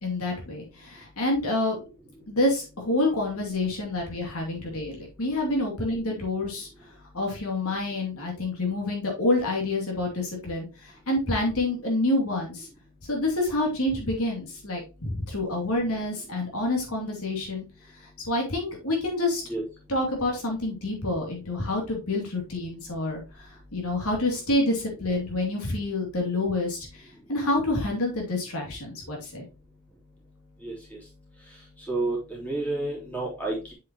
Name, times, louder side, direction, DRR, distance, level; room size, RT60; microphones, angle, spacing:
voice 1, 0.0-1.8 2.3-6.7 7.1-12.7 13.1-17.6 18.3-19.4 19.9-27.0 27.3-29.5, left 2 dB, 75° left, 0 dB, 2.6 m, -28 dB
voice 2, 30.6-31.0 31.9-33.7, right 2 dB, 5° left, -4 dB, 3.2 m, -30 dB
7.4 x 5.8 x 2.9 m, 0.30 s
head